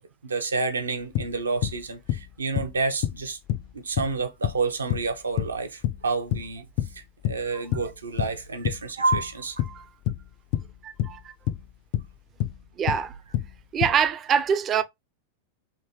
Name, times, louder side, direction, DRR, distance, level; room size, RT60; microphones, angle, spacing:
voice 1, 0.2-3.4 3.7-6.7 6.9-9.6, right 4 dB, 75° right, 0.7 m, -29 dB
sound 1, 1.1-7.5 7.7-14.0, left 12 dB, 40° left, 0.3 m, -28 dB
voice 2, 10.8-11.3 12.8-13.1 13.7-14.8, right 8 dB, 25° right, 0.4 m, -25 dB
3.5 x 2.7 x 2.9 m
figure-of-eight pair, 90°, 0 cm